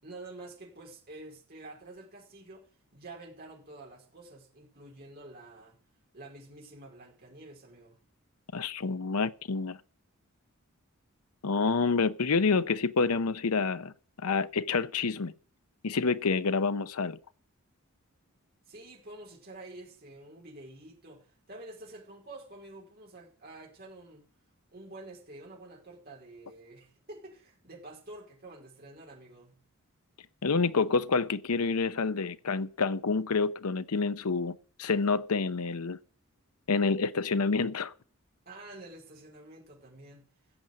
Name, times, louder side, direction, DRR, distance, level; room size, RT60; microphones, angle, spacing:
voice 1, 0.0-2.7 2.9-5.8 6.1-8.0 18.7-24.3 24.7-29.6 38.4-40.3, right 2 dB, 45° right, 4.6 m, -48 dB
voice 2, 8.5-9.8 11.4-13.9 14.2-15.3 15.8-17.2 30.4-36.0 36.7-37.9, left 4 dB, 80° left, 0.7 m, -28 dB
15.0 x 7.5 x 7.9 m
head